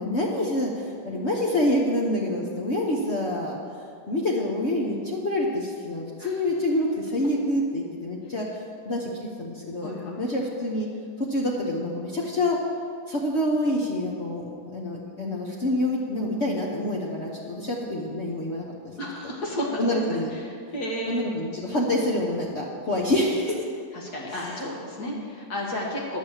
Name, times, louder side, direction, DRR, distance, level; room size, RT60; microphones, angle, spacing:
voice 1, 0.0-3.6 4.1-8.5 8.9-9.9 10.2-10.9 11.2-12.6 13.1-18.7 19.8-20.3 21.1-23.7 24.3-24.7 25.0-25.2, left 1 dB, 45° left, -2 dB, 1.2 m, -27 dB
voice 2, 9.8-10.2 19.0-19.8 20.1-20.2 20.7-21.2 23.9-26.2, left 1 dB, 65° left, -3 dB, 2.0 m, -32 dB
10.5 x 6.9 x 7.2 m, 2.3 s
omnidirectional pair, 1.8 m